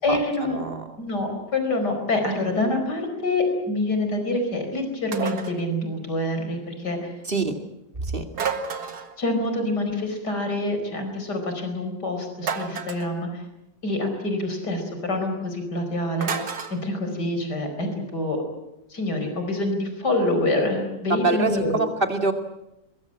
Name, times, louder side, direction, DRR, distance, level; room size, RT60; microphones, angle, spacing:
voice 1, 0.0-0.6 1.0-7.1 9.2-13.4 13.8-18.4 18.9-21.8, left 2 dB, 75° left, 6 dB, 5.4 m, -26 dB
sound 1, 5.1-5.6 8.3-9.2 12.4-13.1 16.2-16.8, right 6 dB, 70° right, 2.3 m, -30 dB
voice 2, 21.2-21.5 21.8-22.3, right 3 dB, 30° right, 6 dB, 2.5 m, -24 dB
23.0 x 21.5 x 8.6 m, 0.90 s
omnidirectional pair, 1.8 m